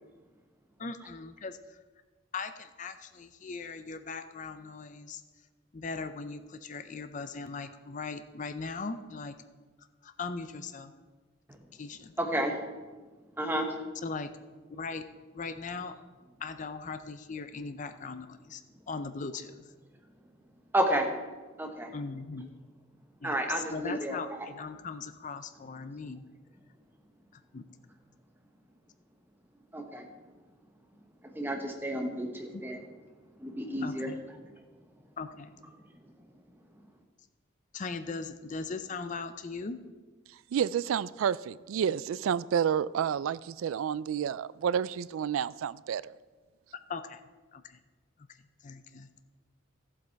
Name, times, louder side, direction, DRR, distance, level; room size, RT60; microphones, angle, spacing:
voice 1, 0.8-1.8 2.3-5.2 5.7-9.3 10.0-10.9 11.7-12.1 14.0-14.3 14.7-15.0 15.3-15.9 16.4-18.6 18.9-19.6 21.9-22.5 23.2-26.2 27.3-27.6 32.5-32.6 33.8-34.2 35.2-35.5 37.7-39.8 46.9-47.2 47.5-47.8 48.6-49.1, left 4 dB, 40° left, 0.5 m, -39 dB
voice 2, 12.2-12.7 13.4-13.7 20.7-21.1 21.6-21.9 23.2-24.4 29.7-30.1 31.2-32.8 33.4-34.1, right 1 dB, 10° right, 1.1 m, -31 dB
voice 3, 40.5-46.1, right 8 dB, 85° right, 0.3 m, -30 dB
14.0 x 7.5 x 4.6 m
head